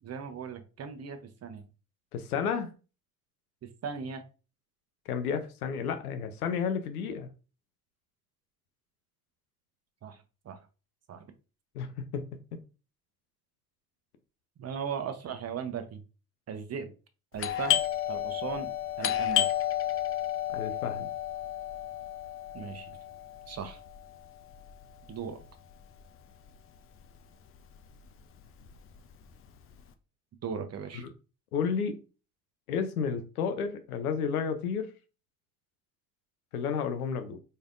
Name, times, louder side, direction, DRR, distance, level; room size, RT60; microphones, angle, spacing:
voice 1, 0.0-1.6 3.8-4.2 10.0-10.2 10.5-10.6 11.1-11.3 14.6-16.0 16.5-16.9 17.3-17.8 18.1-18.7 19.0-19.5 22.5-22.9 23.5-23.8 25.1-25.4 30.4-31.0, right 6 dB, 35° right, 9 dB, 0.9 m, -37 dB
voice 2, 2.1-2.7 5.1-7.3 11.7-12.2 20.5-21.1 30.9-31.1 31.5-32.0 32.7-34.9 36.5-37.4, left 6 dB, 85° left, 9 dB, 0.7 m, -31 dB
Doorbell, 17.4-26.8 27.0-27.1 27.7-28.1 28.4-29.8, left 12 dB, 30° left, 0.5 m, -32 dB
4.1 x 3.4 x 2.5 m, 0.34 s
hypercardioid pair, 65°, 43 cm